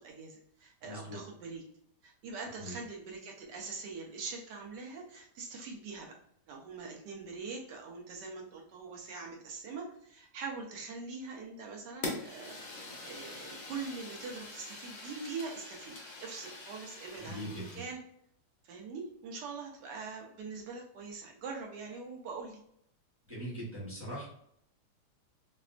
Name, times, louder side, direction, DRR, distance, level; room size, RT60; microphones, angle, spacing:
voice 1, 0.0-1.6 2.0-6.1 6.5-16.0 16.2-18.0 18.6-22.6, right 4 dB, 85° right, 0 dB, 1.3 m, -43 dB
voice 2, 0.8-1.2 2.6-2.7 17.2-17.8 23.3-24.3, equal, 15° right, -7 dB, 0.5 m, -41 dB
Fire, 12.0-17.9, left 2 dB, 75° left, 0.4 m, -44 dB
3.4 x 2.1 x 2.4 m, 0.70 s
omnidirectional pair, 1.8 m